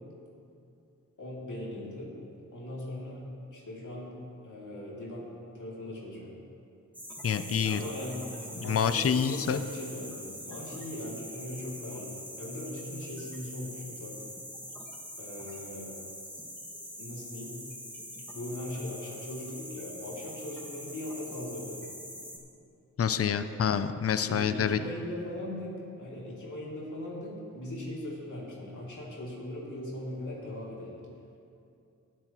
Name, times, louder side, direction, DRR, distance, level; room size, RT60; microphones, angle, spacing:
voice 1, 1.2-2.1 2.5-3.2 3.5-4.1 4.4-5.2 5.5-6.3 7.6-10.2 10.4-12.1 12.4-14.2 15.2-15.9 17.0-17.6 18.3-21.8 23.2-23.4 24.3-31.0, left 1 dB, 70° left, -5 dB, 2.8 m, -39 dB
sound 1, 6.9-22.4, equal, 5° left, 1.6 m, -44 dB
voice 2, 7.2-7.8 8.6-9.6 23.0-24.8, left 7 dB, 50° left, 11 dB, 0.5 m, -27 dB
18.5 x 8.8 x 3.0 m, 2.6 s
cardioid pair, 65°, 31 cm